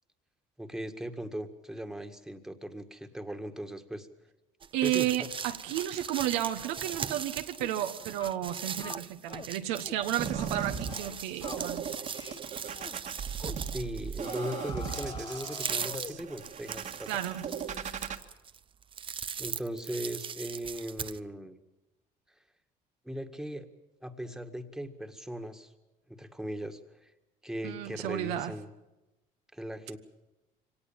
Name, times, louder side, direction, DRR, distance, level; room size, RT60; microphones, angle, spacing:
voice 1, 0.6-4.1 4.8-5.3 13.7-17.2 19.4-21.6 23.0-23.7 24.0-25.7 26.1-27.1 27.4-28.7 29.5-30.0, right 1 dB, 5° right, 6 dB, 1.9 m, -38 dB
sound 1, 4.6-21.2, right 6 dB, 30° right, 0.8 m, -40 dB
voice 2, 4.7-12.0 17.1-17.4 27.6-28.5, right 13 dB, 90° right, 6 dB, 1.2 m, -32 dB
sound 2, 7.6-7.8 8.2-8.4 8.8-9.5 9.8-10.1 10.3-10.6 10.9-11.1 11.4-11.7 12.1-12.4 12.7-13.0 13.4-13.6 14.2-16.3, left 5 dB, 30° left, 0.8 m, -45 dB
sound 3, 10.2-18.2, right 7 dB, 50° right, 1.7 m, -38 dB
24.0 x 18.0 x 7.4 m, 1.0 s
supercardioid pair, 90°, 17 cm